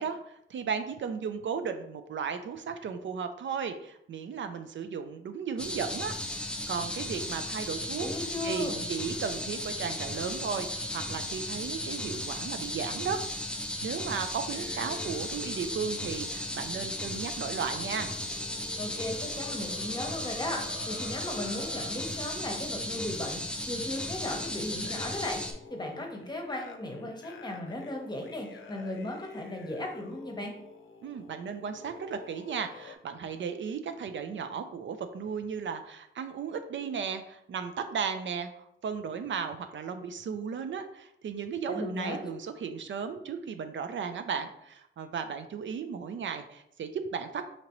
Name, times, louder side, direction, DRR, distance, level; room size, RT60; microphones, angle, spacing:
voice 1, 0.0-8.1 8.4-13.2 13.8-18.1 31.0-47.4, right 6 dB, 70° right, 8 dB, 0.4 m, -35 dB
sound 1, 5.6-25.5, left 1 dB, 5° left, 0.4 m, -35 dB
voice 2, 8.0-8.8 18.8-20.6 20.9-30.5 41.7-42.3, left 1 dB, 20° left, 1 dB, 0.8 m, -36 dB
sound 2, 14.5-22.1 22.9-23.2 23.8-33.0, left 5 dB, 80° left, 0.5 m, -49 dB
5.1 x 2.8 x 3.0 m, 0.77 s
wide cardioid pair, 125°, 20 cm